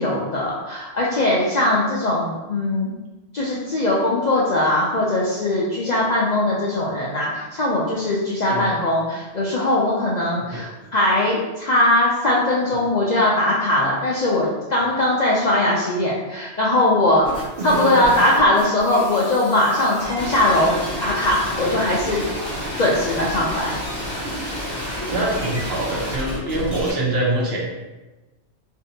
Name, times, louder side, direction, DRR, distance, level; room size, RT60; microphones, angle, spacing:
voice 1, 0.0-2.9 3.3-17.3 17.6-22.2 22.8-23.8, left 1 dB, 60° left, -5 dB, 0.4 m, -20 dB
sound 1, 17.2-26.9, equal, 25° right, 0.9 m, -30 dB
voice 2, 17.6-18.2 25.1-27.6, right 1 dB, 60° right, -4 dB, 0.9 m, -24 dB
3.3 x 2.6 x 2.7 m, 1.1 s
omnidirectional pair, 1.2 m